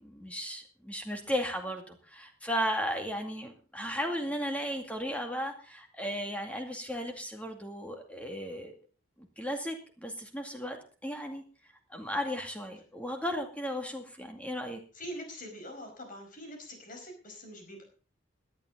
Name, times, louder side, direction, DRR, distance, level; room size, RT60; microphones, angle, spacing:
voice 1, 0.0-8.7 9.2-11.4 11.9-14.8, equal, 5° left, 4 dB, 2.2 m, -35 dB
voice 2, 14.9-17.8, equal, 40° left, 4 dB, 5.2 m, -44 dB
17.0 x 11.5 x 3.9 m, 0.38 s
head